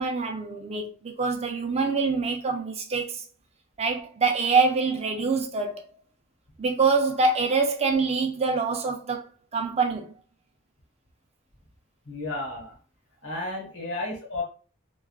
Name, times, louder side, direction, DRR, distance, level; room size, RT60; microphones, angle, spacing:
voice 1, 0.0-3.2 3.8-5.8 6.6-9.2 9.5-10.1, right 4 dB, 30° right, 0.4 m, -25 dB
voice 2, 12.1-12.7 13.2-14.4, left 2 dB, 65° left, 1.3 m, -32 dB
3.5 x 2.3 x 2.3 m
head